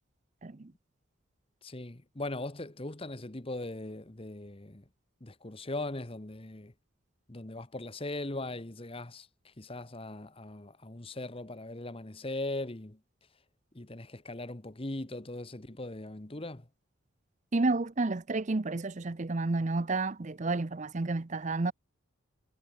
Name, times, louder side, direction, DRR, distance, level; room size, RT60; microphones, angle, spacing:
voice 1, 1.6-4.9 5.2-6.7 7.3-13.0 13.7-16.7, left 2 dB, 25° left, 1.1 m, -39 dB
voice 2, 17.5-21.7, right 3 dB, 35° right, 0.6 m, -30 dB
head